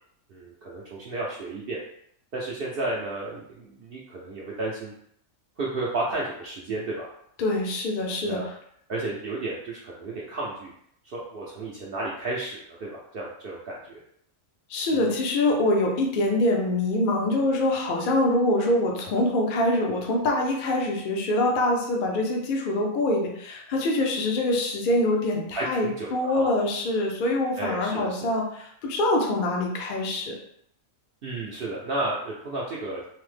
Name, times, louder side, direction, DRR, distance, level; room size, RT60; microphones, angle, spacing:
voice 1, 0.3-1.8 2.3-4.9 5.6-7.1 8.2-8.5 8.9-10.7 11.0-14.0 14.9-15.2 25.5-26.5 27.6-28.4 31.2-33.0, right 2 dB, 60° right, -4 dB, 0.6 m, -32 dB
voice 2, 7.4-8.4 14.7-30.4, left 1 dB, 55° left, 0 dB, 0.6 m, -24 dB
3.3 x 2.0 x 3.2 m, 0.69 s
omnidirectional pair, 1.4 m